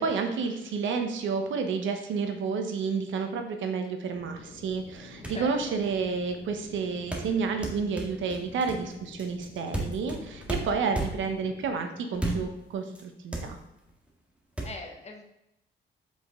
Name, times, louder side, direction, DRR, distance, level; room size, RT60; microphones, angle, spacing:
voice 1, 0.0-13.6, right 5 dB, 75° right, 5 dB, 1.2 m, -30 dB
sound 1, 4.1-11.8, left 3 dB, 65° left, 1.8 m, -49 dB
sound 2, 4.9-5.0 5.2-5.5 7.1-11.4 12.1-12.6 12.9-13.0 13.3-13.9 14.6-14.7, right 2 dB, 5° right, 1.8 m, -33 dB
voice 2, 5.3-5.7 14.6-15.2, left 3 dB, 35° left, 2 dB, 1.6 m, -41 dB
7.7 x 5.3 x 3.8 m, 0.86 s
cardioid pair, 90°, 20 cm